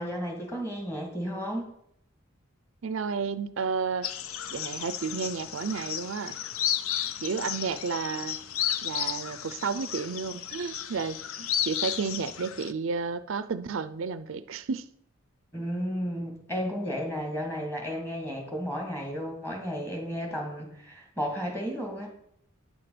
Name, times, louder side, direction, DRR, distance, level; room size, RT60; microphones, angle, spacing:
voice 1, 0.0-1.7 15.5-22.1, equal, 10° left, 1 dB, 2.3 m, -33 dB
voice 2, 2.8-4.1 4.5-6.4 7.2-8.4 8.8-14.9, right 5 dB, 65° right, 13 dB, 0.5 m, -32 dB
sound 1, 4.0-12.7, left 9 dB, 75° left, 0.6 m, -33 dB
9.5 x 6.7 x 5.9 m, 0.72 s
head